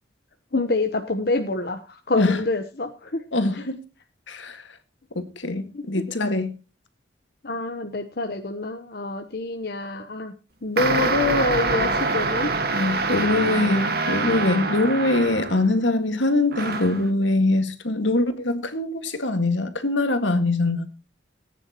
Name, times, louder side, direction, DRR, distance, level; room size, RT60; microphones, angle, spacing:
voice 1, 0.5-3.2 3.5-3.7 5.7-5.8 7.4-10.3 10.6-12.5, left 3 dB, 55° left, 1.0 m, -26 dB
voice 2, 3.3-3.8 4.3-4.6 5.2-6.5 12.7-20.9, left 2 dB, 75° left, 2.0 m, -23 dB
sound 1, 10.8-15.8 16.5-17.1, right 3 dB, 50° right, 1.7 m, -25 dB
19.0 x 9.8 x 3.0 m
head